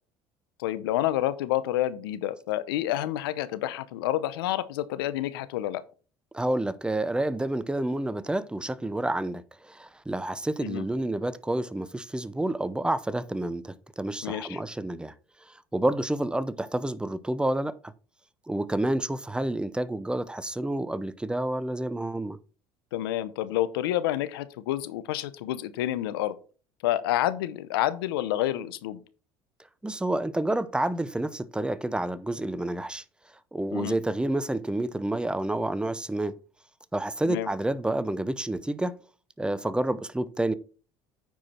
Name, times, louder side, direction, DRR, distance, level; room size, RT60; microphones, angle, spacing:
voice 1, 0.6-5.8 10.6-10.8 14.2-14.6 22.9-26.4 26.8-29.0 33.7-33.9 37.2-37.5, left 13 dB, 90° left, 0.7 m, -29 dB
voice 2, 6.3-15.1 15.4-17.9 18.5-22.4 29.8-33.0 33.5-36.4 36.9-39.0 39.4-40.5, right 1 dB, 5° right, 0.7 m, -29 dB
9.2 x 4.9 x 4.3 m
supercardioid pair, 85°, 12 cm